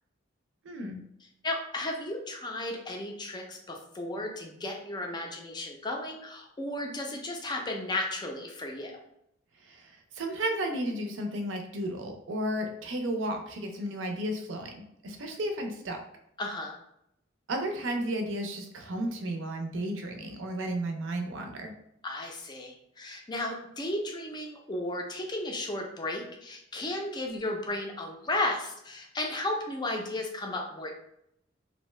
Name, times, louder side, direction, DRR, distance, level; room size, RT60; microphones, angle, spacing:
voice 1, 0.6-1.0 9.6-16.0 17.5-21.7, right 1 dB, 65° right, 4 dB, 0.5 m, -33 dB
voice 2, 1.4-9.0 16.4-16.8 22.0-30.9, left 1 dB, 20° left, 1 dB, 0.4 m, -34 dB
2.6 x 2.2 x 3.1 m, 0.76 s
head